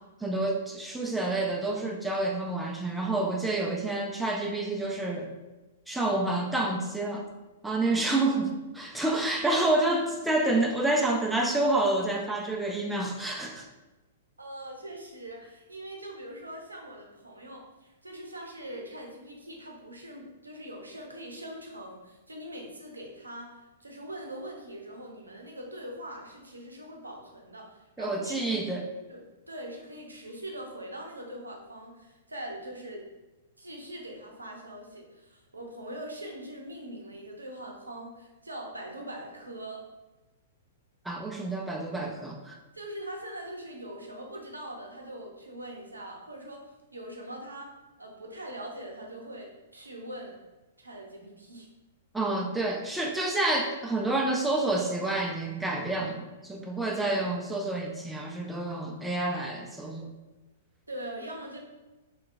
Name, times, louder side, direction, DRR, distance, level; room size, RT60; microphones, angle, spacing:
voice 1, 0.2-5.3 5.9-7.3 7.6-13.7 28.0-28.9 41.1-42.6 52.1-60.1, right 2 dB, 5° right, 1 dB, 0.4 m, -28 dB
voice 2, 14.4-28.4 29.1-29.2 29.5-33.1 33.6-39.8 42.7-46.6 46.9-47.7 48.0-50.4 50.8-51.7 60.9-61.6, right 1 dB, 80° right, 0 dB, 0.6 m, -42 dB
3.5 x 2.7 x 2.5 m, 1.1 s
figure-of-eight pair, 105°, 0 cm